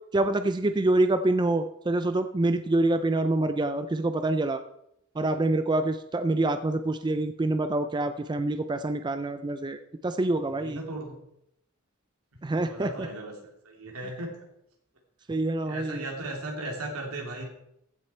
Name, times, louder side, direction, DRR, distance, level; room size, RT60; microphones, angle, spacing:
voice 1, 0.1-4.6 5.2-10.8 12.4-13.1 15.3-16.0, right 2 dB, 20° right, 9 dB, 0.4 m, -26 dB
voice 2, 10.5-11.2 12.3-13.3 13.6-14.3 15.6-17.4, right 2 dB, 80° right, 1 dB, 2.9 m, -37 dB
15.0 x 6.5 x 4.4 m, 0.79 s
head